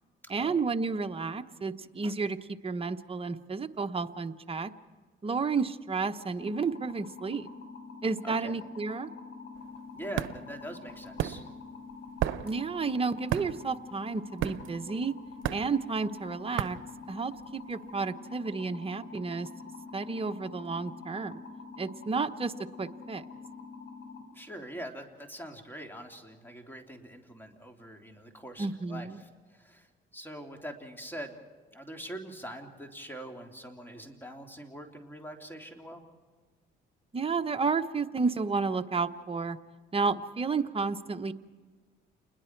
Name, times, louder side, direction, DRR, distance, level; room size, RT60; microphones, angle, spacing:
voice 1, 0.3-4.7 5.2-7.5 8.0-9.1 12.4-15.1 15.5-16.8 17.1-19.5 19.9-21.4 21.8-23.2 28.6-29.2 37.1-39.6 39.9-41.3, right 4 dB, 30° right, 8 dB, 1.0 m, -31 dB
sound 1, 6.4-24.2, left 4 dB, 65° left, 6.4 m, -46 dB
voice 2, 8.2-8.6 9.9-11.5 24.3-31.4 31.7-36.0, equal, 10° left, 3 dB, 3.1 m, -43 dB
sound 2, 9.6-17.7, right 13 dB, 85° right, 0.6 m, -35 dB
28.5 x 21.0 x 4.6 m, 1.4 s
cardioid pair, 90°, 20 cm